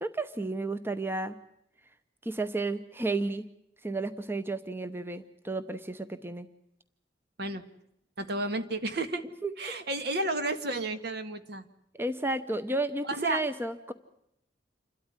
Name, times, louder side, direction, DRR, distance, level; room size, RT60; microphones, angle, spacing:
voice 1, 0.0-1.4 2.2-3.5 3.8-6.5 9.4-9.5 11.9-13.9, right 2 dB, 15° right, 10 dB, 0.8 m, -32 dB
voice 2, 8.2-9.2 9.6-11.7 13.1-13.4, right 2 dB, 65° right, 9 dB, 1.7 m, -32 dB
28.0 x 13.0 x 9.8 m, 0.79 s
head